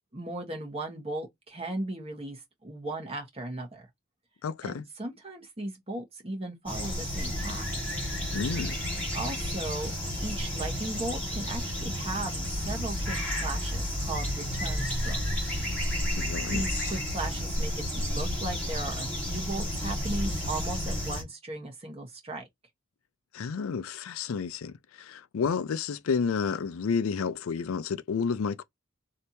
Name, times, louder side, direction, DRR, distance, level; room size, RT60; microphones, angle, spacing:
voice 1, 0.1-3.9 4.6-7.7 9.1-9.9 10.2-15.5 16.4-22.4, right 2 dB, 30° right, 1.4 m, -37 dB
voice 2, 4.4-4.8 8.3-8.8 16.2-16.9 23.3-28.6, left 5 dB, 80° left, 0.4 m, -31 dB
sound 1, 6.7-21.2, equal, 10° left, 1.8 m, -31 dB
3.3 x 2.7 x 2.8 m
head